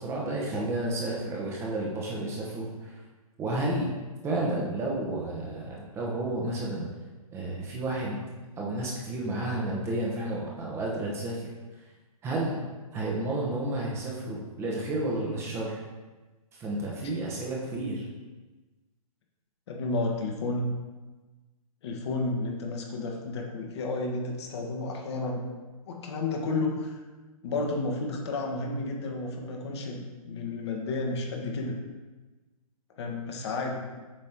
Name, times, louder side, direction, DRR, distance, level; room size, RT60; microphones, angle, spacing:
voice 1, 0.0-3.0 3.4-3.9 4.2-6.9 7.3-8.2 8.6-11.5 12.2-12.6 12.9-15.8 16.6-18.1, right 2 dB, 15° right, -3 dB, 0.9 m, -31 dB
voice 2, 19.7-20.7 21.8-25.5 25.9-27.0 27.4-31.8 33.0-33.8, left 2 dB, 45° left, 1 dB, 1.3 m, -31 dB
7.4 x 3.2 x 4.4 m, 1.2 s
figure-of-eight pair, 135°, 19 cm